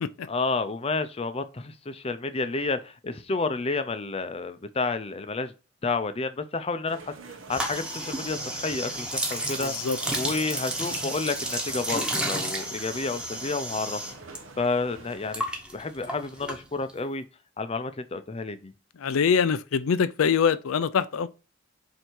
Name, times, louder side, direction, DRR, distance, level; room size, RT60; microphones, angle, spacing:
voice 1, 0.3-5.5 5.8-7.1 7.5-9.7 10.1-14.0 14.6-15.4 15.7-17.2 17.6-18.7, left 3 dB, 30° left, 0.6 m, -30 dB
sound 1, 6.9-15.4, right 3 dB, 70° right, 1.1 m, -46 dB
sound 2, 7.5-14.4 14.6-17.0, right 1 dB, 5° right, 1.1 m, -32 dB
voice 2, 9.6-10.0 19.0-21.3, left 6 dB, 80° left, 0.4 m, -24 dB
7.8 x 2.8 x 4.5 m
head